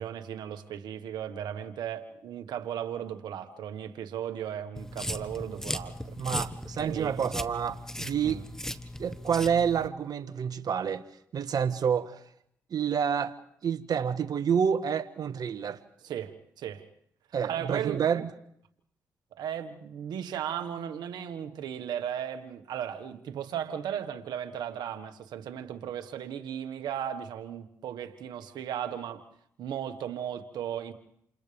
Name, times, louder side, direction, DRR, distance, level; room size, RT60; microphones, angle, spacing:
voice 1, 0.0-6.2 6.8-7.2 8.2-8.4 16.0-16.8 17.4-18.0 19.3-29.3 29.6-30.9, right 9 dB, 85° right, 1.5 m, -36 dB
sound 1, 4.8-9.9, left 1 dB, 5° left, 1.4 m, -37 dB
voice 2, 6.2-8.4 9.0-11.0 11.3-12.2 12.7-13.3 13.6-15.8 17.3-18.3, right 7 dB, 65° right, 1.3 m, -28 dB
28.5 x 28.5 x 3.5 m
supercardioid pair, 50°, 7 cm